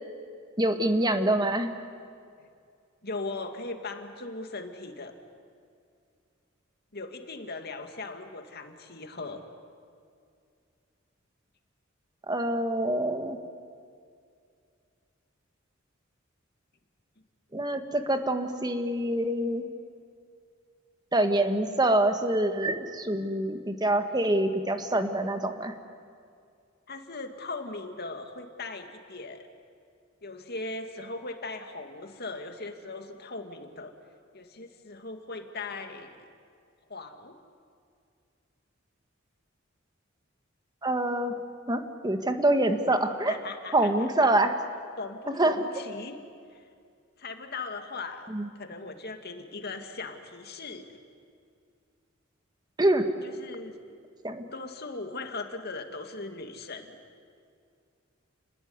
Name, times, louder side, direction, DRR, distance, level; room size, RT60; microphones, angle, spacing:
voice 1, 0.6-1.8 12.3-13.4 17.5-19.7 21.1-25.7 40.8-41.4 41.7-43.4 43.7-44.5 45.3-45.6 48.3-48.5 52.8-53.1 54.2-54.4, right 1 dB, 20° right, 7 dB, 1.7 m, -25 dB
voice 2, 3.0-5.1 6.9-9.4 26.9-29.5 30.2-33.9 34.3-36.3 36.9-37.4 43.3-44.1 45.0-46.2 46.5-46.6 47.2-48.3 48.6-51.0 53.2-53.8 54.5-57.0, left 3 dB, 55° left, 6 dB, 2.4 m, -39 dB
30.0 x 20.0 x 9.7 m, 2.3 s
head